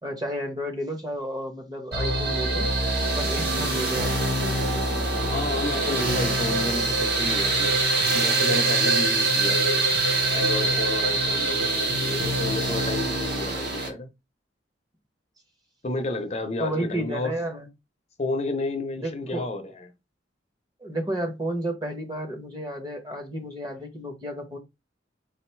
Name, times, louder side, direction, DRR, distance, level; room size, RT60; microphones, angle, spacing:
voice 1, 0.0-2.7 3.1-4.4 16.6-17.7 19.0-19.4 20.8-24.6, right 1 dB, 20° right, 1.0 m, -32 dB
sound 1, 1.9-13.9, right 2 dB, 60° right, 1.5 m, -24 dB
voice 2, 5.3-7.8 8.1-9.9 10.3-14.1 15.8-17.3 18.2-19.9, left 2 dB, 35° left, 0.7 m, -31 dB
4.1 x 2.6 x 4.5 m
head